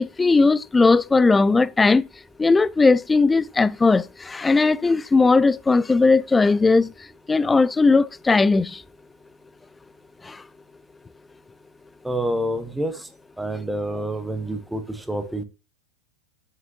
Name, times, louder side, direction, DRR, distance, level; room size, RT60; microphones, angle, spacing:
voice 1, 0.0-2.0 2.4-6.9 7.3-8.8 10.3-10.4, left 3 dB, 10° left, 0.3 m, -18 dB
voice 2, 12.0-13.1 13.4-15.4, right 1 dB, 5° right, 1.1 m, -27 dB
7.2 x 6.5 x 2.7 m
figure-of-eight pair, 90°, 0 cm